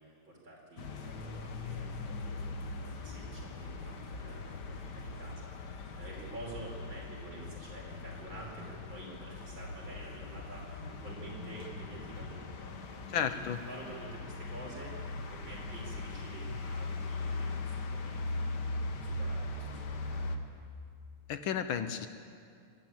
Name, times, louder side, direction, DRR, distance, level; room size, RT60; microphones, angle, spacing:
voice 1, 0.0-13.4 13.6-20.2, right 2 dB, 60° right, -3 dB, 6.2 m, -49 dB
sound 1, 0.8-20.4, left 2 dB, 55° left, 1.8 m, -40 dB
voice 2, 13.1-13.6 21.3-22.1, left 8 dB, 70° left, 10 dB, 1.6 m, -32 dB
25.5 x 15.5 x 9.0 m, 2.3 s
omnidirectional pair, 2.4 m